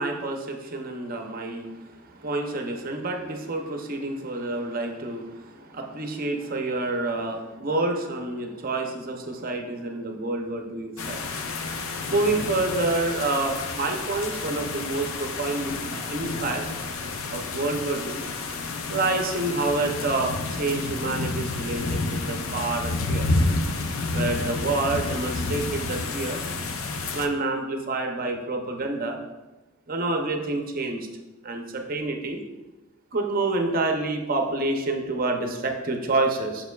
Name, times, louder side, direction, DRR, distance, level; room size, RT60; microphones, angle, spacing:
voice 1, 0.0-11.2 12.1-16.6 17.3-18.2 18.9-23.3 24.1-26.4 27.1-29.2 29.9-31.1 31.4-32.4 33.1-36.7, right 2 dB, 45° right, 3 dB, 0.6 m, -28 dB
sound 1, 11.0-27.3, left 3 dB, 90° left, 0.6 m, -30 dB
6.6 x 6.1 x 2.3 m, 1.1 s
head